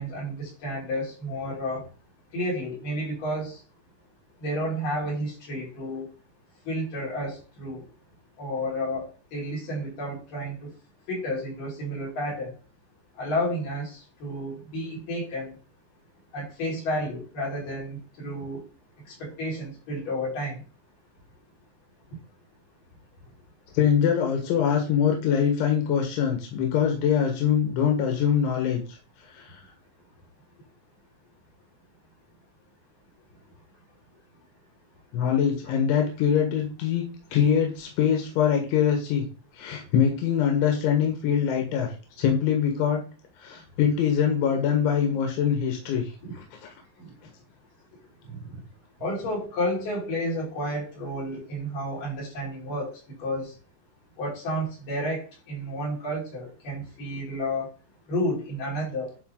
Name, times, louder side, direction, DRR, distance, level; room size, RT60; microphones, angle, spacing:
voice 1, 0.0-1.9 2.3-3.6 4.4-6.1 6.6-7.8 8.4-10.7 11.1-12.5 13.2-15.5 16.3-18.6 19.1-20.6 46.2-46.3 47.0-47.1 48.3-48.4 49.0-53.5 54.2-57.7 58.1-59.1, equal, 45° left, -5 dB, 6.5 m, -31 dB
voice 2, 23.7-29.0 29.3-29.6 35.1-37.0 37.3-39.3 39.5-41.9 42.2-43.0 43.4-46.7, left 8 dB, 85° left, 3 dB, 4.0 m, -23 dB
11.5 x 5.3 x 3.9 m, 0.35 s
omnidirectional pair, 5.2 m